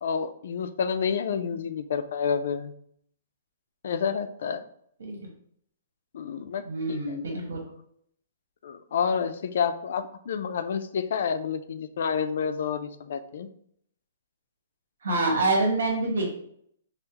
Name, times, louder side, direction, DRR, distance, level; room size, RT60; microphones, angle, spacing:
voice 1, 0.0-2.7 3.8-4.6 6.1-7.2 8.6-13.5, left 6 dB, 55° left, 10 dB, 0.3 m, -29 dB
voice 2, 6.6-7.6 15.0-16.3, right 2 dB, 90° right, 0 dB, 1.3 m, -26 dB
5.5 x 2.0 x 2.9 m, 0.67 s
hypercardioid pair, 170°, 0 cm